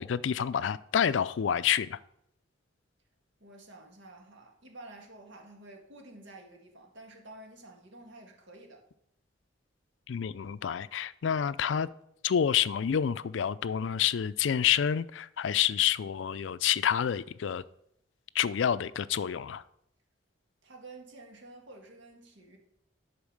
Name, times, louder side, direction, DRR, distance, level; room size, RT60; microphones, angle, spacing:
voice 1, 0.0-2.0 10.1-11.9 12.2-17.6 18.3-19.6, left 8 dB, 75° left, 0.4 m, -28 dB
voice 2, 3.4-8.9 20.6-22.6, right 2 dB, 75° right, 1.9 m, -50 dB
10.5 x 4.5 x 6.5 m
head